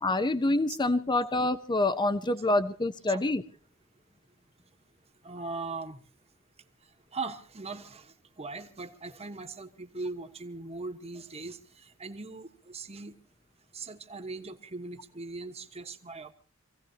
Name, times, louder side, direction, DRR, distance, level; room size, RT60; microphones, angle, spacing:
voice 1, 0.0-3.4, left 2 dB, 20° left, 12 dB, 0.7 m, -26 dB
voice 2, 5.2-6.0 7.1-13.2 13.7-16.3, right 3 dB, 30° right, 7 dB, 1.3 m, -40 dB
26.5 x 16.5 x 2.8 m, 0.41 s
head